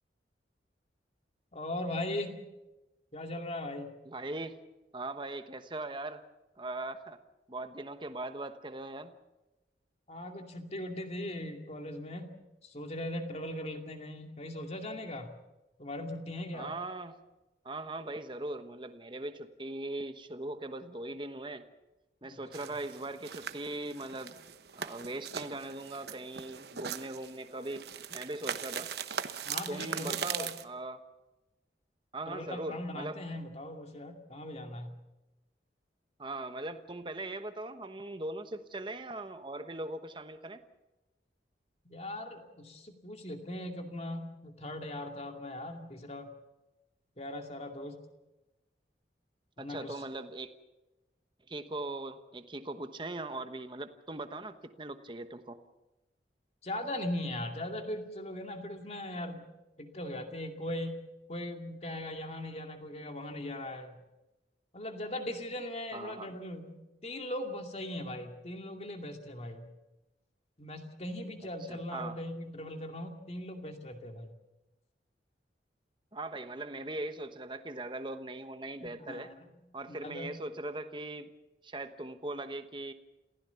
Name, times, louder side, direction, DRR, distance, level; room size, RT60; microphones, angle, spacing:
voice 1, 1.5-2.4 3.1-3.9 10.1-12.3 12.6-15.4 15.8-16.7 22.2-22.4 29.4-30.5 32.3-35.0 41.9-46.3 47.2-48.0 49.6-50.0 56.6-59.5 59.8-64.0 64.7-69.7 70.6-74.3 78.8-79.4 79.9-80.4, left 1 dB, 35° left, 4 dB, 2.4 m, -39 dB
voice 2, 4.0-4.6 4.9-6.2 6.5-7.2 7.5-9.1 16.5-17.2 17.6-21.6 22.2-24.4 24.7-28.9 29.7-31.0 32.1-33.2 36.2-40.6 49.6-50.5 51.5-55.6 65.9-66.4 71.7-72.2 76.1-79.3 79.7-81.3 81.6-82.9, right 2 dB, 25° right, 9 dB, 1.1 m, -40 dB
sound 1, 22.5-30.6, right 7 dB, 65° right, 1.0 m, -40 dB
28.0 x 16.0 x 7.0 m, 1.0 s
head